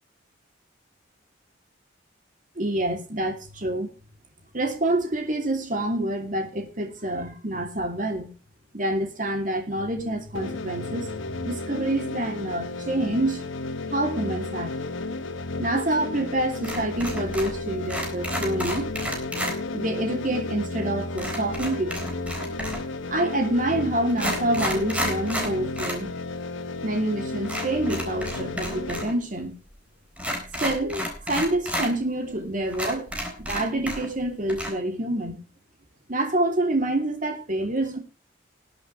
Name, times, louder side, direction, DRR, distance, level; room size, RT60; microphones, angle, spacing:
voice 1, 2.6-3.9 4.5-8.3 8.7-11.1 11.4-13.4 13.9-14.7 15.6-18.9 19.7-22.1 23.1-26.1 26.8-29.6 30.6-33.1 33.5-35.4 36.1-38.0, right 1 dB, 45° right, 5 dB, 2.8 m, -27 dB
sound 1, 10.3-29.0, left 2 dB, 85° left, 1.2 m, -33 dB
sound 2, 16.6-17.6 17.9-19.6 21.2-22.9 23.6-23.7 24.1-26.0 26.3-26.4 27.4-29.1 29.4-29.5 30.2-31.9 32.4-32.5 32.7-34.2 34.5-34.7, equal, 5° right, 3.9 m, -31 dB
20.5 x 8.3 x 3.2 m, 0.35 s
head